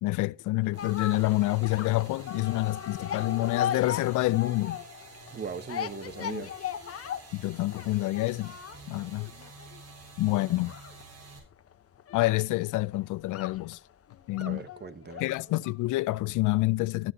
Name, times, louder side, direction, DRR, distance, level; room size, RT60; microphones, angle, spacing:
voice 1, 0.0-4.8 6.2-6.5 7.3-8.6 8.9-9.3 10.2-10.7 12.1-13.8 14.3-14.6 15.2-17.1, left 19 dB, 80° left, 0.4 m, -27 dB
sound 1, 0.6-15.8 16.1-16.2, left 9 dB, 50° left, 1.0 m, -38 dB
sound 2, 0.7-11.4, right 3 dB, 55° right, 4.4 m, -50 dB
voice 2, 5.3-6.5 14.4-15.2, right 5 dB, 35° right, 1.2 m, -39 dB
18.0 x 7.5 x 2.8 m
cardioid pair, 90°, 30 cm